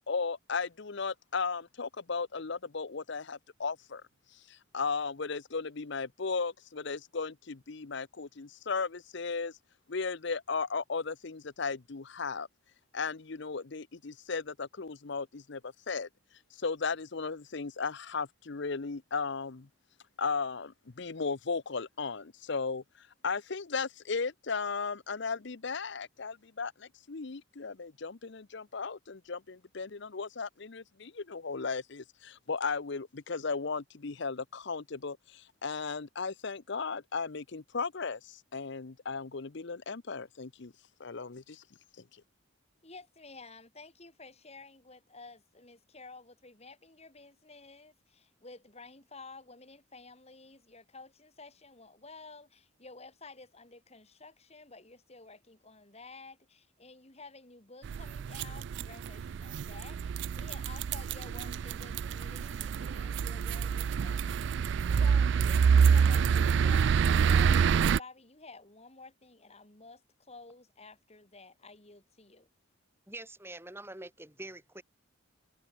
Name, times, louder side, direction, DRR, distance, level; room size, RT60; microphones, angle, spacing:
voice 1, 0.1-4.0 4.5-9.5 9.9-12.5 12.9-16.1 16.6-19.7 20.2-22.8 23.2-40.7 41.0-41.6, left 4 dB, 60° left, 0.8 m, -36 dB
voice 2, 42.8-72.5, left 3 dB, 30° left, 3.1 m, -52 dB
sound 1, 57.8-68.0, right 6 dB, 60° right, 0.3 m, -27 dB
voice 3, 73.1-74.8, right 2 dB, 10° right, 3.2 m, -45 dB
head